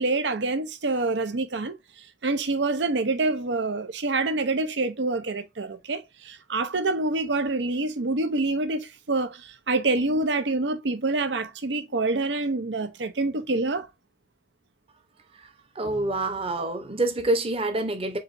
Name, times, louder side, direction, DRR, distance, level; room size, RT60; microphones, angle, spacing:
voice 1, 0.0-1.8 2.2-13.9, right 3 dB, 80° right, 0.7 m, -26 dB
voice 2, 15.4-18.2, right 2 dB, 35° right, 0.9 m, -27 dB
4.8 x 4.0 x 2.6 m
head